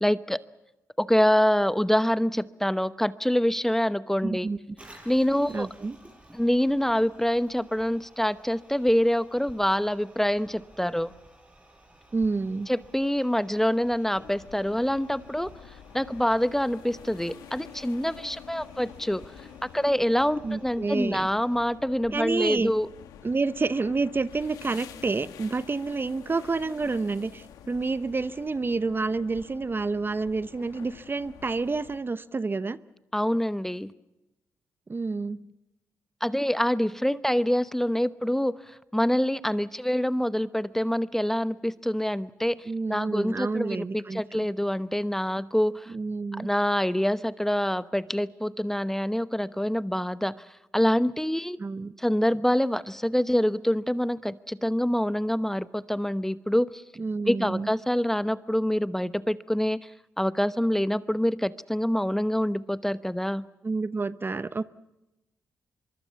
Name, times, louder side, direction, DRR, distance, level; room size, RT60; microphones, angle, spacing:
voice 1, 0.0-0.4 1.0-4.5 5.1-5.7 6.3-11.1 12.7-15.5 15.9-19.2 19.7-22.9 33.1-33.9 36.2-42.6 42.9-45.9 46.3-50.3 50.7-51.6 52.0-56.8 57.3-59.8 60.2-63.4, equal, 5° left, 14 dB, 0.9 m, -26 dB
voice 2, 4.2-4.6 5.5-6.0 12.1-12.7 20.4-21.3 22.1-22.7 23.2-32.8 34.9-35.4 42.7-44.5 45.9-46.5 51.6-51.9 57.0-57.7 63.6-64.6, right 3 dB, 35° right, 15 dB, 0.9 m, -29 dB
Toilet flush, 4.8-21.8, right 1 dB, 20° right, 6.5 m, -55 dB
sound 1, 14.1-32.0, left 9 dB, 90° left, 1.6 m, -48 dB
23.5 x 23.5 x 7.1 m, 0.97 s
supercardioid pair, 50°, 6 cm